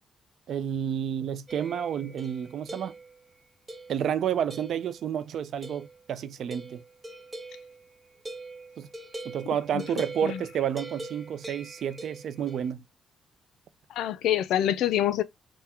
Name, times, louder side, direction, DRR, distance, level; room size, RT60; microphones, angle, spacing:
voice 1, 0.5-2.9 3.9-6.8 8.8-8.9 9.2-12.8, right 9 dB, 65° right, 0.4 m, -30 dB
sound 1, 1.5-3.2 3.7-4.1 4.5-5.1 5.6-6.0 6.5-12.7, right 2 dB, 25° right, 0.8 m, -43 dB
voice 2, 9.7-10.4 13.9-15.2, left 11 dB, 85° left, 0.4 m, -26 dB
3.6 x 2.1 x 4.3 m
cardioid pair, 90°, 0 cm